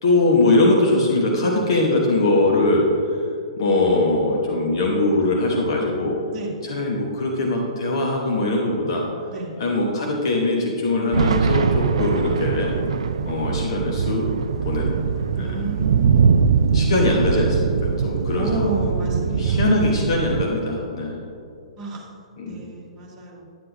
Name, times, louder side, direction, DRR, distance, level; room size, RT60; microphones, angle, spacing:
voice 1, 0.0-2.8 3.6-6.2 6.6-9.1 9.6-12.7 13.3-14.2 14.7-15.0 15.4-15.6 16.7-18.7 19.3-21.3 22.4-22.7, left 2 dB, 50° left, -1 dB, 1.1 m, -21 dB
voice 2, 0.6-1.0 6.3-6.5 9.3-9.5 14.7-16.6 18.4-19.7 21.8-22.1 22.4-23.5, right 2 dB, 25° right, -2 dB, 1.6 m, -31 dB
sound 1, 11.1-20.4, right 6 dB, 60° right, 0.3 m, -22 dB
11.0 x 7.7 x 2.7 m, 2.5 s
figure-of-eight pair, 120°, 3 cm